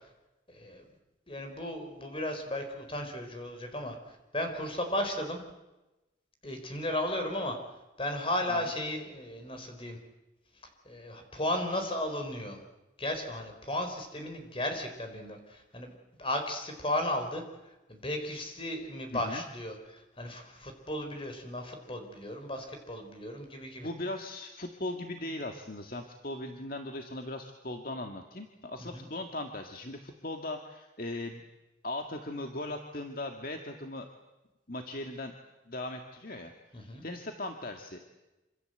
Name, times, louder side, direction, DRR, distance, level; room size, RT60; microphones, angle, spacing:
voice 1, 0.5-0.8 1.3-3.9 4.3-5.4 6.4-7.6 8.0-10.0 10.8-12.6 13.0-15.9 16.2-17.4 17.9-23.9 28.8-29.1 36.7-37.0, left 1 dB, 30° left, 5 dB, 4.6 m, -35 dB
voice 2, 19.1-19.4 23.8-31.4 31.8-34.1 34.7-35.4 35.7-36.5 37.0-38.0, left 1 dB, 50° left, 4 dB, 2.0 m, -38 dB
27.0 x 26.5 x 8.0 m, 1.0 s
head